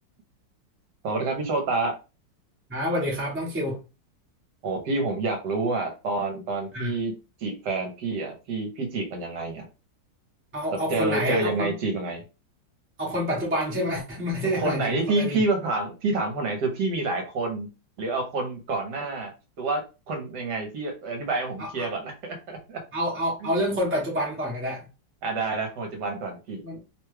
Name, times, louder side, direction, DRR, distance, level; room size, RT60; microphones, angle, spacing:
voice 1, 1.0-1.9 4.6-7.1 7.4-9.6 10.9-12.2 14.5-17.7 18.0-19.3 19.6-22.8 25.2-26.6, right 3 dB, 70° right, 1.3 m, -28 dB
voice 2, 2.7-3.8 6.7-6.9 10.5-11.7 13.0-15.4 21.6-21.9 22.9-24.9 26.6-26.8, equal, 10° right, 0.7 m, -28 dB
3.1 x 2.2 x 3.2 m
omnidirectional pair, 2.0 m